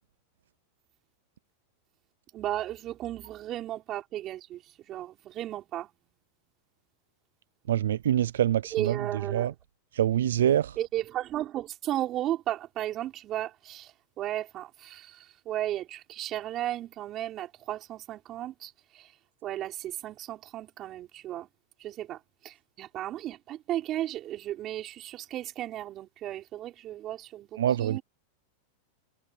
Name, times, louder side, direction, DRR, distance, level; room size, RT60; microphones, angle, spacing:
voice 1, 2.3-5.9 8.7-9.5 10.8-19.1 19.4-21.5 21.8-28.0, right 13 dB, 35° right, 5.4 m, -35 dB
voice 2, 7.7-8.9 9.3-9.5 9.9-10.8 27.6-28.0, right 11 dB, 85° right, 0.5 m, -25 dB
hypercardioid pair, 130°, 0 cm